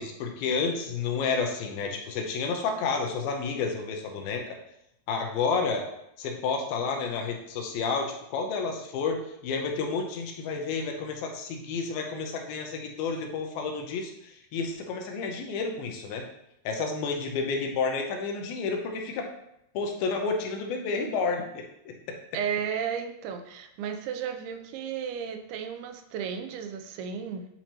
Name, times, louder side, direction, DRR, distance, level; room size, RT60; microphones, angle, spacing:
voice 1, 0.0-4.6 5.1-5.9 6.2-16.2 16.7-19.3 19.7-22.2, left 4 dB, 80° left, 3 dB, 2.5 m, -30 dB
voice 2, 22.3-27.5, right 7 dB, 90° right, 6 dB, 2.6 m, -33 dB
8.9 x 4.4 x 2.9 m, 0.79 s
omnidirectional pair, 4.5 m